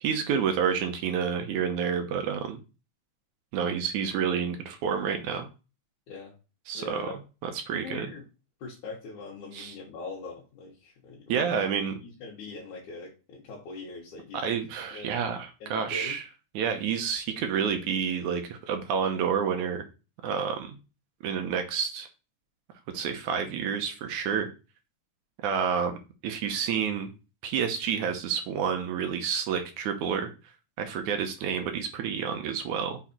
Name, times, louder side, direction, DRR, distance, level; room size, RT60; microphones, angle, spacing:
voice 1, 0.0-2.6 3.5-5.5 6.7-7.1 7.4-8.1 9.5-9.8 11.3-12.0 14.3-16.2 16.5-19.8 20.2-20.8 21.2-22.1 22.9-24.5 25.4-26.0 26.2-27.1 27.4-30.3 30.8-33.0, right 7 dB, 75° right, 6 dB, 2.3 m, -29 dB
voice 2, 6.7-7.2 7.7-8.2 8.6-11.6 12.0-14.6 14.9-15.2 15.6-16.2, left 3 dB, 75° left, -4 dB, 2.8 m, -42 dB
6.0 x 4.1 x 4.3 m, 0.30 s
omnidirectional pair, 3.5 m